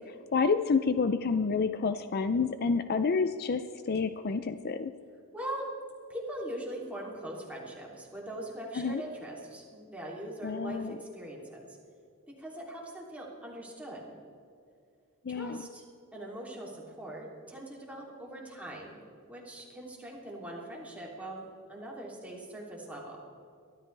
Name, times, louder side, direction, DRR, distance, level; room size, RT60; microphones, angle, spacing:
voice 1, 0.3-3.6 3.9-4.9 8.7-9.0 10.4-10.9 15.3-15.6, left 4 dB, 45° left, 10 dB, 0.5 m, -28 dB
voice 2, 5.3-5.7 6.1-11.8 12.4-14.2 15.3-15.8 16.1-19.0 19.3-23.2, right 1 dB, 5° right, -3 dB, 3.0 m, -41 dB
23.0 x 13.0 x 3.4 m, 2.4 s
head